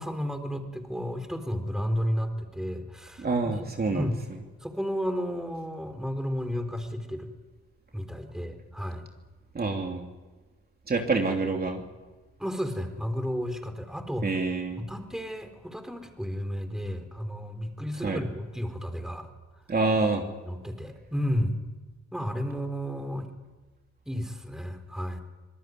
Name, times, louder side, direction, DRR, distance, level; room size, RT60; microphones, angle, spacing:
voice 1, 0.0-3.5 3.9-4.2 4.6-7.3 7.9-9.0 12.4-14.3 14.8-19.3 19.6-19.7 20.5-21.6 22.1-23.3 24.1-25.2, equal, ahead, 7 dB, 4.0 m, -32 dB
voice 2, 3.2-4.4 9.5-10.0 10.9-11.8 14.2-14.8 18.0-18.2 19.7-20.3, right 3 dB, 30° right, 2 dB, 3.1 m, -27 dB
26.0 x 19.5 x 9.6 m, 1.3 s
cardioid pair, 90°, 30 cm